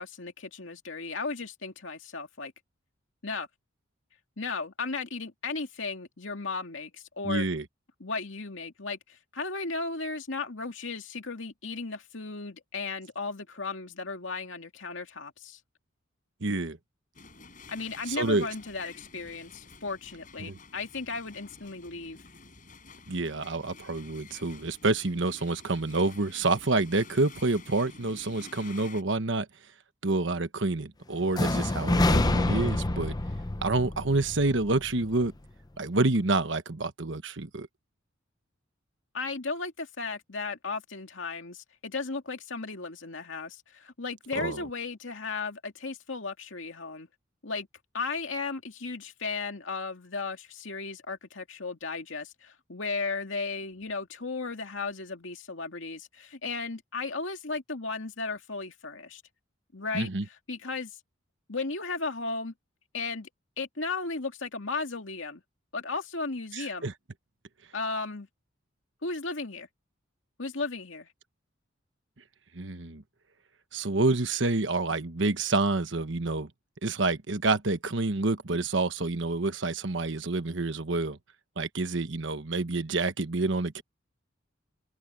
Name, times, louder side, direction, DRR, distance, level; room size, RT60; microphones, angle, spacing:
voice 1, 0.0-2.5 3.2-3.5 4.4-7.5 8.0-15.6 17.7-22.2 39.1-47.1 47.4-47.7 47.9-59.2 59.7-60.1 60.5-60.9 61.5-62.5 62.9-63.3 63.6-65.4 65.7-66.9 67.7-68.3 69.0-69.7 70.4-71.1, left 4 dB, 75° left, 2.4 m, -35 dB
voice 2, 7.2-7.6 16.4-16.8 18.1-18.5 20.4-20.6 23.1-29.5 30.0-33.1 33.6-35.3 35.8-37.7 44.3-44.7 59.9-60.2 66.5-66.9 72.5-73.0 73.7-76.5 76.8-81.2 81.6-83.8, right 2 dB, 65° right, 1.3 m, -28 dB
sound 1, 17.1-29.0, left 4 dB, 45° left, 5.7 m, -50 dB
sound 2, 31.3-35.3, left 2 dB, 20° left, 0.7 m, -27 dB
head